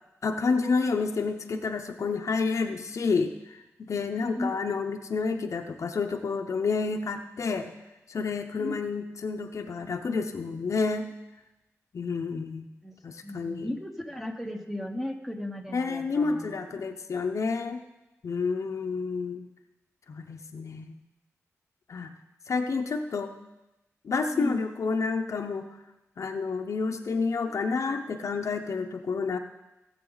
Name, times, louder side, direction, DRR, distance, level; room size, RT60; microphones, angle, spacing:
voice 1, 0.2-7.7 8.1-11.1 11.9-12.7 13.0-13.7 15.7-17.8 18.2-19.4 20.1-20.9 21.9-22.1 22.5-23.3 24.0-25.7 26.2-29.4, left 4 dB, 65° left, 5 dB, 0.8 m, -29 dB
voice 2, 13.2-16.9 24.3-24.6 27.4-27.5, left 1 dB, 5° right, 4 dB, 1.1 m, -36 dB
17.5 x 7.8 x 4.0 m, 0.99 s
wide cardioid pair, 125°, 5 cm